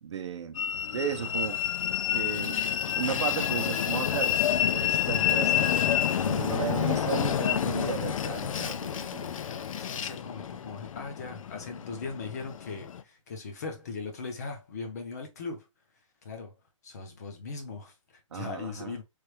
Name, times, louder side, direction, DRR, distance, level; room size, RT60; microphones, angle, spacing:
voice 1, 0.0-0.6 0.9-1.6 2.1-2.7 2.9-4.4 4.7-5.7 6.2-9.3 18.3-19.0, right 7 dB, 55° right, 0.6 m, -34 dB
Train, 0.6-13.0, left 9 dB, 75° left, 0.4 m, -29 dB
voice 2, 6.1-6.7 9.4-15.7 16.2-16.5 16.8-19.0, left 4 dB, 30° left, 0.6 m, -39 dB
3.2 x 2.3 x 3.1 m
hypercardioid pair, 175°, 17 cm